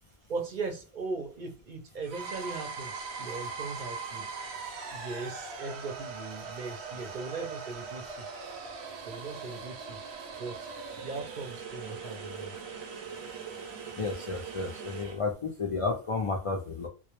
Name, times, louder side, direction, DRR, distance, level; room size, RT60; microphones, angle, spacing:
voice 1, 0.3-4.3 4.8-8.3 9.0-10.0 10.4-10.7 11.0-12.5, right 3 dB, 55° right, 3 dB, 0.6 m, -39 dB
sound 1, 2.0-15.2, right 5 dB, 85° right, 0.9 m, -41 dB
voice 2, 13.9-16.9, left 4 dB, 55° left, 0 dB, 0.3 m, -32 dB
2.2 x 2.0 x 2.9 m, 0.31 s
omnidirectional pair, 1.1 m